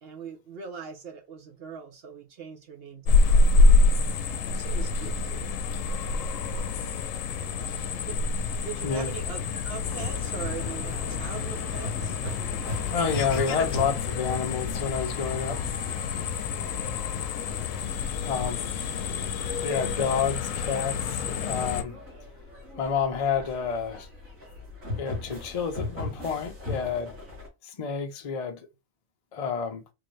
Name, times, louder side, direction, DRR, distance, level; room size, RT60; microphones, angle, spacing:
voice 1, 0.0-3.7 4.4-5.5 8.1-8.2 8.6-12.2, right 6 dB, 55° right, 0.8 m, -41 dB
sound 1, 3.1-21.8, left 3 dB, 75° left, 0.9 m, -27 dB
sound 2, 9.8-27.5, left 2 dB, 85° right, 2.1 m, -39 dB
voice 2, 12.9-15.7 18.2-18.6 19.6-22.0 22.7-24.1 25.0-27.1 27.6-28.7 29.3-29.8, left 6 dB, 55° left, 0.4 m, -29 dB
3.8 x 2.6 x 3.1 m
omnidirectional pair, 1.4 m